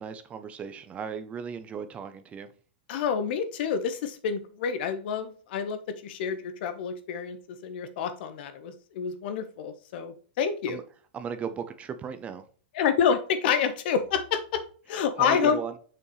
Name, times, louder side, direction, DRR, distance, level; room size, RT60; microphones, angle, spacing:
voice 1, 0.0-2.5 10.7-10.8 11.1-12.4 15.2-15.8, right 6 dB, 20° right, 10 dB, 0.7 m, -36 dB
voice 2, 2.9-10.8 12.7-14.6 14.9-15.6, left 7 dB, 60° left, 10 dB, 1.2 m, -28 dB
7.1 x 5.7 x 3.2 m, 0.43 s
hypercardioid pair, 140°, 6 cm